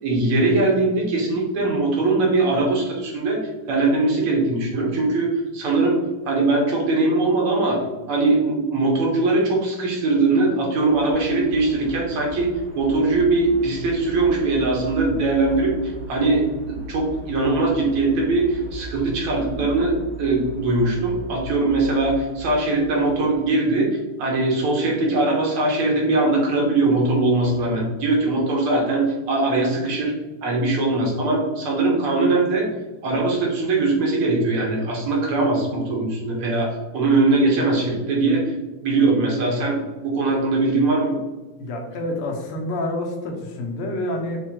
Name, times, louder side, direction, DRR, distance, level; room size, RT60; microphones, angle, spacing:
voice 1, 0.0-3.4 3.7-6.0 6.3-12.5 12.8-30.1 30.4-32.7 33.0-38.6 38.8-41.2, right 2 dB, 80° right, -2 dB, 1.9 m, -21 dB
sound 1, 10.9-23.4, right 1 dB, 20° right, 0.7 m, -38 dB
voice 2, 41.6-44.4, left 1 dB, 90° left, 2 dB, 1.6 m, -28 dB
5.4 x 2.2 x 2.9 m, 1.2 s
omnidirectional pair, 2.4 m